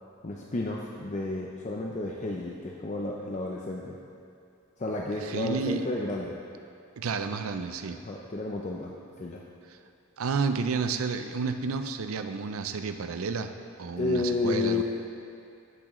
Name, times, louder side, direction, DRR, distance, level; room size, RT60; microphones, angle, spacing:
voice 1, 0.2-4.0 4.8-6.4 7.9-9.4 14.0-14.8, left 2 dB, 35° left, -1 dB, 0.5 m, -31 dB
voice 2, 5.2-5.8 7.0-8.0 10.2-13.5 13.8-14.8, right 5 dB, 85° right, 8 dB, 0.5 m, -31 dB
15.0 x 6.1 x 3.1 m, 2.5 s
head